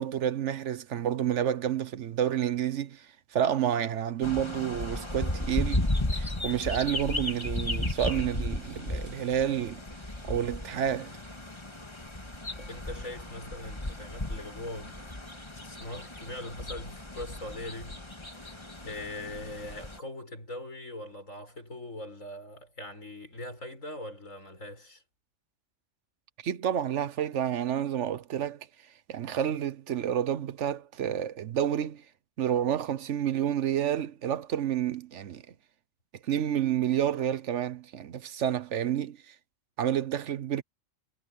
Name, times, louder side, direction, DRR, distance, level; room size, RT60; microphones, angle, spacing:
voice 1, 0.0-3.1 3.3-9.8 10.2-11.2 26.4-28.7 29.1-32.0 32.4-35.4 36.2-39.3 39.8-40.6, right 10 dB, 70° right, 1.1 m, -29 dB
sound 1, 4.2-20.0, left 1 dB, 20° left, 1.9 m, -35 dB
voice 2, 12.5-25.0, left 1 dB, 85° left, 7.7 m, -42 dB
omnidirectional pair, 1.3 m